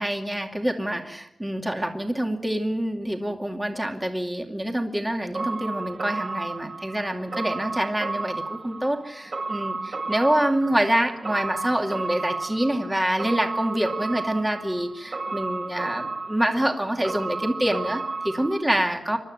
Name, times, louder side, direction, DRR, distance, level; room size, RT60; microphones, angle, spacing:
voice 1, 0.0-19.2, right 1 dB, 10° right, 3 dB, 2.4 m, -26 dB
sound 1, 5.3-18.6, right 3 dB, 50° right, 6.7 m, -33 dB
28.0 x 12.5 x 9.1 m, 0.84 s
wide cardioid pair, 120°, 0 cm